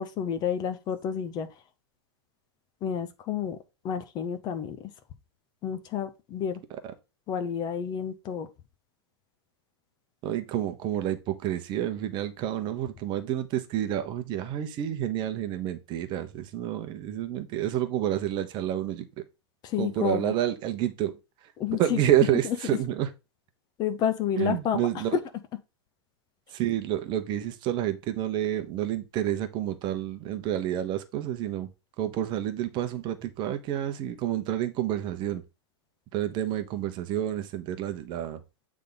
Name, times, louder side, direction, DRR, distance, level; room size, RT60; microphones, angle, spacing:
voice 1, 0.0-1.5 2.8-3.6 3.8-4.9 5.6-6.6 7.3-8.5 19.6-20.3 21.6-22.0 22.4-22.6 23.8-25.0, left 8 dB, 30° left, 0.7 m, -30 dB
voice 2, 10.2-19.1 19.8-21.2 21.7-23.1 24.4-25.1 26.5-31.7 32.0-35.4 36.1-38.4, right 11 dB, 30° right, 0.9 m, -29 dB
8.3 x 3.6 x 3.9 m
hypercardioid pair, 140°, 15 cm